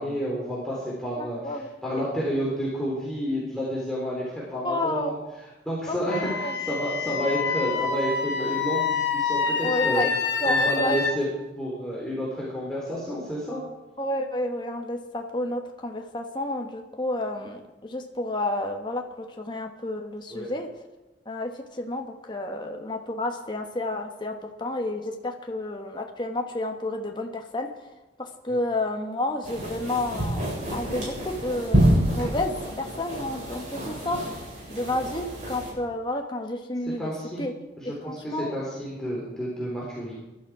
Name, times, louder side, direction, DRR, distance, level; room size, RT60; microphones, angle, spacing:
voice 1, 0.0-1.5 1.8-5.2 5.7-10.0 10.4-11.2 11.6-13.6 20.3-20.5 37.0-37.5 37.8-40.1, equal, 5° left, -6 dB, 3.5 m, -30 dB
voice 2, 1.2-2.1 4.6-5.1 5.9-6.5 9.6-10.1 10.4-11.0 14.0-20.7 21.2-27.7 28.2-34.4 34.7-37.0 37.4-37.5 37.8-38.5, left 1 dB, 25° left, 3 dB, 1.3 m, -31 dB
Wind instrument woodwind instrument, 6.1-11.1, left 5 dB, 80° left, 1.7 m, -27 dB
sound 1, 29.4-35.7, right 1 dB, 45° right, 7.6 m, -27 dB
21.5 x 12.0 x 4.9 m, 1.1 s
head